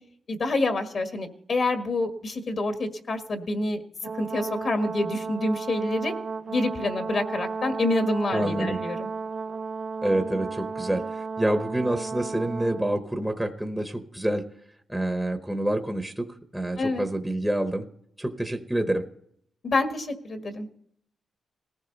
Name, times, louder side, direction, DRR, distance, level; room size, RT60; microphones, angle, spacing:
voice 1, 0.3-3.8 4.2-6.1 6.5-9.1 16.8-17.1 19.6-20.7, left 2 dB, 50° left, 6 dB, 1.7 m, -27 dB
Brass instrument, 4.0-13.0, right 5 dB, 45° right, 0.5 m, -33 dB
voice 2, 8.3-8.8 10.0-14.5 14.9-17.9 18.2-19.0, right 1 dB, 5° right, 6 dB, 1.0 m, -27 dB
19.5 x 15.0 x 4.0 m, 0.69 s
cardioid pair, 115°, 0 cm